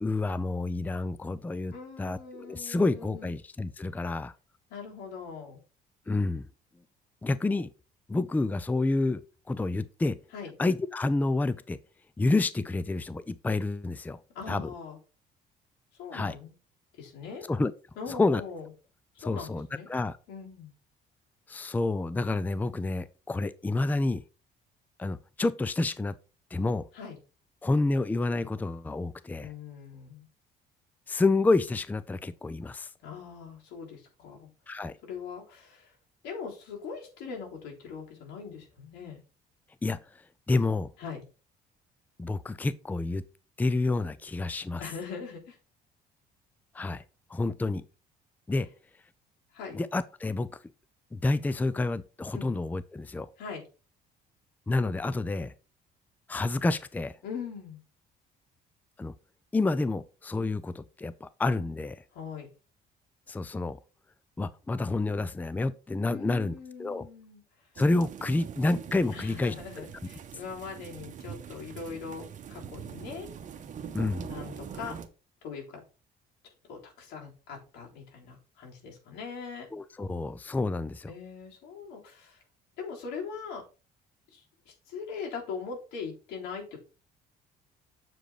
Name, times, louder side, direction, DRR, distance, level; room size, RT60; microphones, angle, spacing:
voice 1, 0.0-1.7 2.0-4.3 6.1-6.4 7.2-7.7 8.1-9.2 9.5-10.2 10.6-11.8 12.2-14.2 14.5-14.7 16.1-16.4 17.5-17.7 18.1-18.4 19.2-20.2 21.5-24.2 25.0-26.1 26.5-26.9 27.6-29.5 31.1-32.9 34.7-34.9 39.8-40.2 40.5-40.9 42.2-43.2 43.6-44.8 46.7-47.0 47.3-47.8 48.5-48.7 49.7-50.5 51.1-53.3 54.7-55.5 56.3-57.2 59.0-59.1 59.5-62.0 63.3-63.8 64.4-66.5 66.8-67.1 67.8-69.8 73.9-74.3 79.7-81.1, left 2 dB, 10° left, 0.5 m, -29 dB
voice 2, 1.7-3.3 4.7-5.6 10.3-10.5 14.3-15.0 16.0-16.5 16.9-17.5 18.0-18.7 19.1-19.9 20.3-20.7 26.9-27.2 29.4-30.3 33.0-34.5 35.0-35.9 36.2-39.2 41.0-41.3 44.8-45.6 49.5-49.8 52.3-52.5 53.4-53.6 57.2-57.8 62.1-62.5 66.1-67.4 69.1-73.3 74.3-75.0 75.4-75.8 76.7-79.7 81.1-82.4 82.8-83.6 84.3-86.8, left 5 dB, 90° left, 3.5 m, -41 dB
sound 1, 67.8-75.1, right 8 dB, 50° right, 1.1 m, -43 dB
7.7 x 5.0 x 4.8 m
cardioid pair, 110°, 17 cm